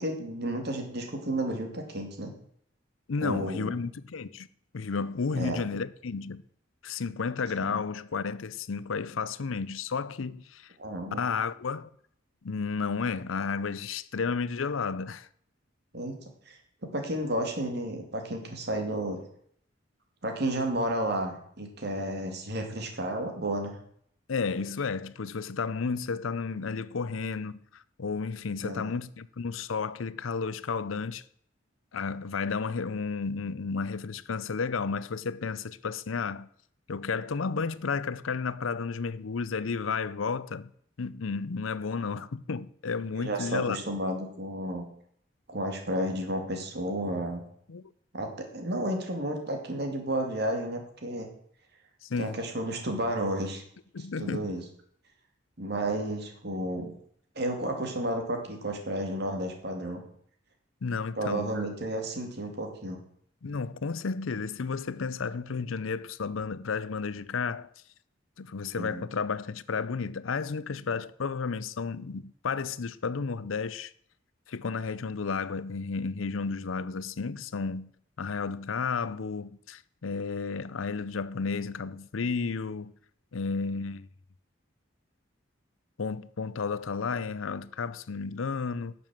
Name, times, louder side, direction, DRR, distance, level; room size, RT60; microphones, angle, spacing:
voice 1, 0.0-2.3 3.2-3.7 5.3-5.6 7.6-7.8 10.8-11.2 15.9-16.1 16.5-16.6 16.9-19.2 20.2-23.8 28.6-28.9 43.2-44.9 45.5-47.4 48.1-51.3 52.2-53.6 54.2-54.6 55.6-56.9 57.4-60.0 61.2-63.0 68.8-69.0, right 1 dB, 55° right, 2.4 m, -32 dB
voice 2, 3.1-4.5 4.7-6.4 6.8-10.7 11.1-11.9 12.4-15.3 24.3-31.2 31.9-36.5 36.9-40.7 41.0-43.8 47.7-47.9 52.0-52.4 53.9-54.5 60.8-61.6 63.4-67.7 68.4-73.9 74.5-77.9 78.2-82.9 83.3-84.1 86.0-88.9, left 5 dB, 85° left, 0.6 m, -32 dB
11.0 x 6.9 x 7.5 m
head